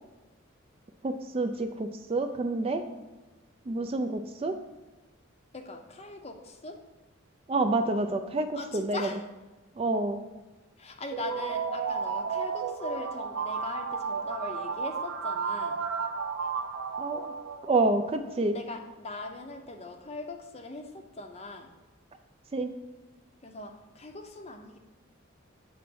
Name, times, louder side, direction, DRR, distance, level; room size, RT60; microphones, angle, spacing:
voice 1, 1.0-2.8 3.7-4.5 7.5-9.1 9.8-10.2 17.0-17.3 17.6-18.6 22.5-22.7, right 2 dB, 30° right, 7 dB, 0.3 m, -28 dB
voice 2, 5.5-6.8 8.5-9.2 10.8-15.8 18.5-21.7 23.4-24.8, left 2 dB, 30° left, 5 dB, 0.6 m, -40 dB
sound 1, 11.1-17.9, right 6 dB, 90° right, 0.6 m, -33 dB
8.0 x 3.1 x 6.1 m, 1.1 s
head